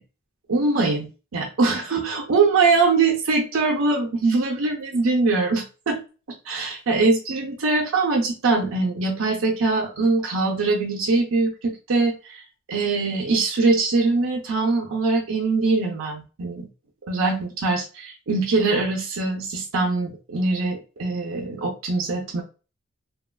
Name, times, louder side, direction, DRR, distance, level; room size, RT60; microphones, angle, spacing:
voice 1, 0.5-1.1 1.3-6.0 6.5-12.4 12.7-16.7 17.1-22.4, right 3 dB, 75° right, 0 dB, 0.6 m, -22 dB
3.0 x 2.3 x 2.2 m, 0.32 s
head